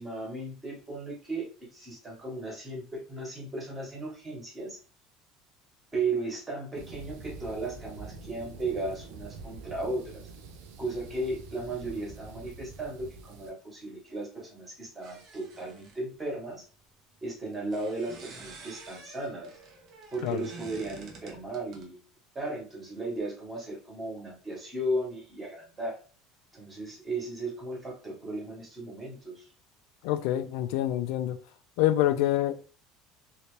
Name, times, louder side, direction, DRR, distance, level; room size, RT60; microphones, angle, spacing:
voice 1, 0.0-4.8 5.9-10.3 10.8-16.6 17.2-19.5 20.1-22.0 22.3-26.0 26.5-29.5, right 2 dB, 15° right, 1.3 m, -35 dB
sound 1, 6.7-13.5, right 3 dB, 80° right, 0.7 m, -46 dB
sound 2, 15.0-16.0 17.5-21.8, right 3 dB, 35° right, 0.7 m, -48 dB
voice 2, 30.0-31.4 31.8-32.6, left 13 dB, 70° left, 0.4 m, -26 dB
3.1 x 2.8 x 3.1 m
cardioid pair, 175°, 0 cm